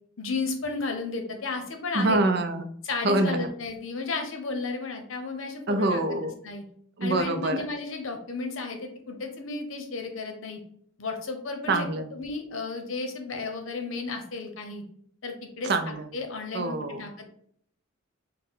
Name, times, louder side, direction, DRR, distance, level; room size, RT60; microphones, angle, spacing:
voice 1, 0.2-2.2 2.8-6.6 7.0-10.6 11.0-14.8 15.2-15.7 16.1-17.3, left 3 dB, 75° left, 5 dB, 0.7 m, -33 dB
voice 2, 1.9-2.7 3.0-3.5 5.7-6.3 7.0-7.6 11.7-12.1 15.6-16.1 16.5-17.1, right 2 dB, 55° right, 8 dB, 0.4 m, -25 dB
4.2 x 2.1 x 3.7 m, 0.65 s
head